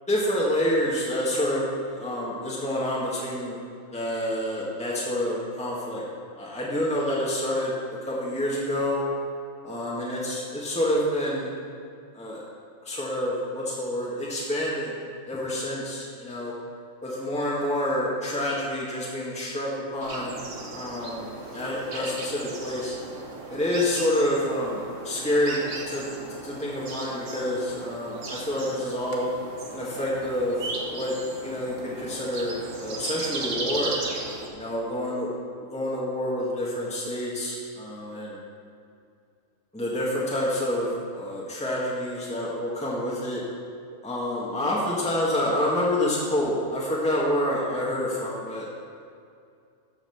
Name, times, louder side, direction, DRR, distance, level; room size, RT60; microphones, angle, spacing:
voice 1, 0.1-3.6 3.9-6.0 6.4-7.7 8.0-9.0 9.6-11.5 12.1-12.4 12.8-15.0 15.3-16.5 17.0-20.3 20.7-22.9 23.5-26.1 26.4-29.3 29.7-31.2 31.4-34.0 34.5-35.3 35.6-38.4 39.7-43.4 44.0-48.7, left 1 dB, 5° left, -6 dB, 1.7 m, -28 dB
sound 1, 20.0-34.5, right 2 dB, 70° right, 1.6 m, -37 dB
14.0 x 5.9 x 5.8 m, 2.4 s
omnidirectional pair, 1.4 m